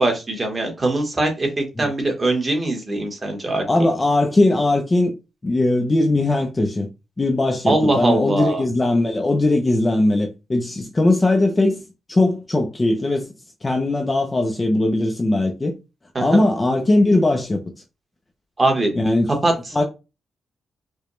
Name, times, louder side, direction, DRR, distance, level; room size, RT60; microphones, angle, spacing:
voice 1, 0.0-3.6 7.7-8.6 16.1-16.4 18.6-18.9 19.4-19.5, right 2 dB, 20° right, 1.0 m, -21 dB
voice 2, 3.7-5.1 5.4-6.9 7.2-11.8 12.1-13.3 13.6-15.7 16.2-17.6 19.0-19.3 19.7-19.8, left 2 dB, 20° left, 0.4 m, -19 dB
4.8 x 2.1 x 3.0 m
wide cardioid pair, 170°, 0 cm